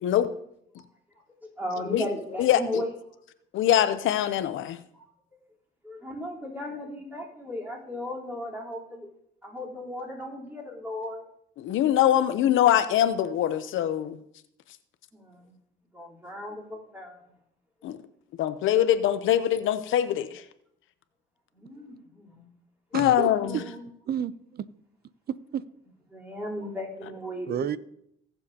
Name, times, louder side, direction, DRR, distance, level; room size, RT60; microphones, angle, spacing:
voice 1, 1.4-2.9 4.9-5.1 5.8-9.1 9.4-11.2 15.1-15.6 15.9-17.3 21.5-22.5 23.3-23.8 26.1-27.7, left 1 dB, 10° right, 3.8 m, -36 dB
voice 2, 2.4-2.8 3.5-4.8 11.6-14.2 17.8-18.0 18.4-20.4 22.9-23.6, left 11 dB, 80° left, 0.7 m, -23 dB
voice 3, 22.9-23.7 24.1-24.6 25.5-25.6 27.4-27.8, right 9 dB, 55° right, 0.6 m, -31 dB
19.5 x 7.2 x 2.9 m
cardioid pair, 90°, 20 cm